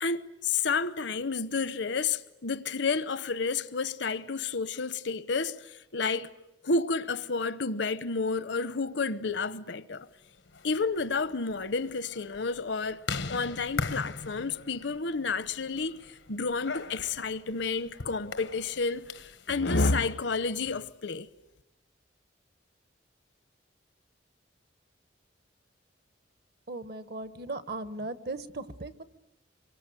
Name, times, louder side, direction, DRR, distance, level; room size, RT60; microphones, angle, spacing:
voice 1, 0.0-6.3 6.6-10.1 10.6-13.0 13.3-16.0 16.3-19.1 19.5-21.3, left 4 dB, 70° left, 0.9 m, -30 dB
sound 1, 10.4-19.5, left 4 dB, 90° left, 1.3 m, -40 dB
voice 2, 26.7-29.0, right 2 dB, 60° right, 1.2 m, -37 dB
26.5 x 23.5 x 9.2 m
head